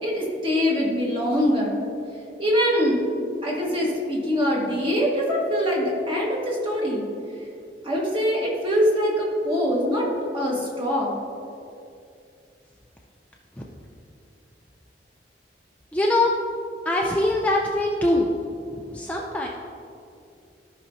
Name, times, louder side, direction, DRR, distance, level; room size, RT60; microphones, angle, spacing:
voice 1, 0.0-1.8 2.4-3.0 3.4-7.1 7.8-10.1 10.3-11.2, equal, 30° right, -4 dB, 1.8 m, -23 dB
voice 2, 15.9-16.3 16.8-18.3 18.7-19.5, left 2 dB, 10° left, -2 dB, 0.6 m, -22 dB
15.0 x 5.6 x 2.8 m, 2.5 s
head